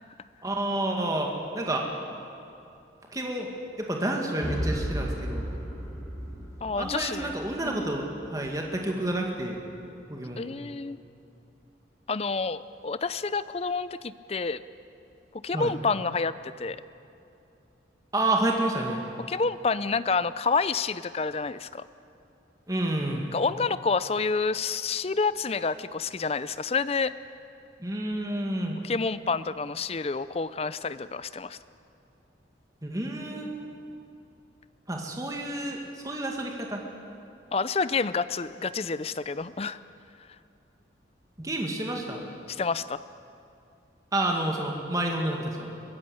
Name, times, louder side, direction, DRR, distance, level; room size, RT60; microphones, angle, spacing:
voice 1, 0.4-1.9 3.1-5.5 6.8-9.6 10.1-10.5 15.5-15.8 18.1-19.0 22.7-23.3 27.8-28.8 32.8-33.7 34.9-36.8 41.4-42.3 44.1-45.7, right 1 dB, 20° right, 1 dB, 2.0 m, -29 dB
sound 1, 4.4-8.3, equal, ahead, 6.9 m, -34 dB
voice 2, 6.6-7.4 7.6-7.9 10.4-11.0 12.1-14.6 15.4-16.8 19.3-21.8 23.3-27.1 28.8-31.6 37.5-39.8 42.5-43.0, left 4 dB, 30° left, 15 dB, 0.5 m, -28 dB
22.5 x 16.0 x 8.2 m, 2.6 s
head